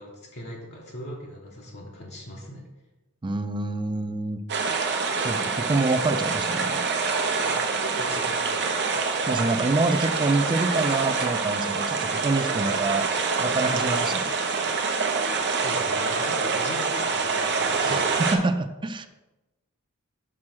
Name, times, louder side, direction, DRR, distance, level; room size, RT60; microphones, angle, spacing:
voice 1, 0.0-2.7 7.4-8.8 12.5-12.7 13.7-14.1 14.6-15.0 15.5-18.1, equal, 50° left, -3 dB, 1.1 m, -40 dB
voice 2, 3.2-4.7 5.2-6.9 9.3-13.1 13.4-14.3 17.8-19.1, right 2 dB, 20° right, 9 dB, 0.4 m, -26 dB
sound 1, 4.5-18.4, right 4 dB, 50° right, 0.8 m, -26 dB
6.1 x 4.3 x 6.1 m, 1.1 s
head